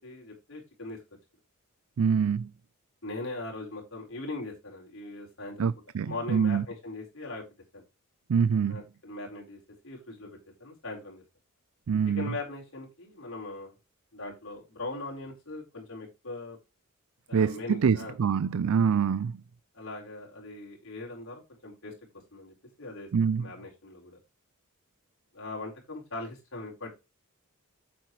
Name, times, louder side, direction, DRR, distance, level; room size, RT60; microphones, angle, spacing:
voice 1, 0.0-1.0 3.0-5.7 6.1-7.4 7.7-7.8 8.7-11.2 12.1-13.7 14.1-16.6 17.3-18.1 18.8-19.0 19.7-21.9 22.3-23.1 23.4-24.2 25.3-26.9, left 2 dB, 65° left, 4.5 m, -40 dB
voice 2, 2.0-2.5 5.6-6.6 8.3-8.8 11.9-12.3 17.3-19.4 23.1-23.5, right 6 dB, 70° right, 0.4 m, -25 dB
8.8 x 7.8 x 3.2 m
head